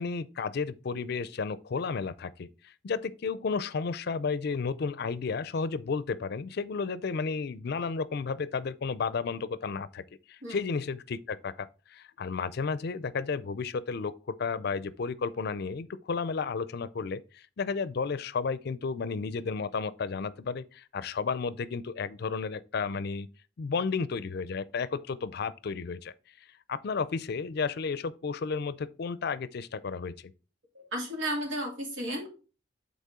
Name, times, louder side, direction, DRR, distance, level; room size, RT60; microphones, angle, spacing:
voice 1, 0.0-10.0 10.3-23.3 23.6-26.1 26.7-30.3, left 5 dB, 55° left, 0.4 m, -32 dB
voice 2, 30.7-32.3, right 1 dB, 85° right, 2.8 m, -33 dB
8.3 x 4.1 x 3.7 m
head